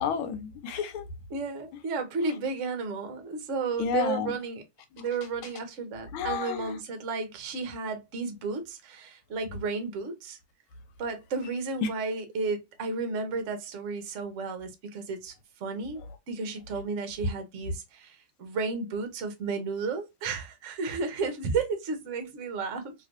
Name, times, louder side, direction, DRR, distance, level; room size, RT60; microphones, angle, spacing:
voice 1, 0.0-1.1 3.8-4.3 6.1-6.8 11.8-11.9, left 7 dB, 85° left, 1.6 m, -30 dB
voice 2, 1.3-4.6 5.0-10.4 11.0-22.9, right 4 dB, 55° right, 0.8 m, -33 dB
3.2 x 3.0 x 2.5 m
omnidirectional pair, 2.2 m